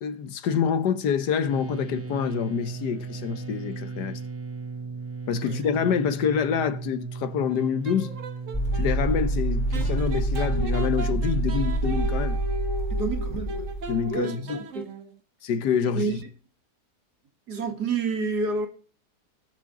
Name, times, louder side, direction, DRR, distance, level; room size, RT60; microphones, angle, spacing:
voice 1, 0.0-4.2 5.3-8.1 8.7-12.4 13.9-14.6 15.4-16.2, left 7 dB, 75° left, 1.6 m, -27 dB
sound 1, 1.5-11.7, right 4 dB, 25° right, 0.3 m, -37 dB
sound 2, 7.5-8.9 9.7-15.2, right 1 dB, 50° right, 1.5 m, -37 dB
sound 3, 8.5-14.1, right 1 dB, 15° left, 2.8 m, -26 dB
voice 2, 12.9-13.7 14.1-14.9 15.9-16.2 17.5-18.7, right 4 dB, 70° right, 2.4 m, -29 dB
19.0 x 6.4 x 3.7 m
omnidirectional pair, 1.8 m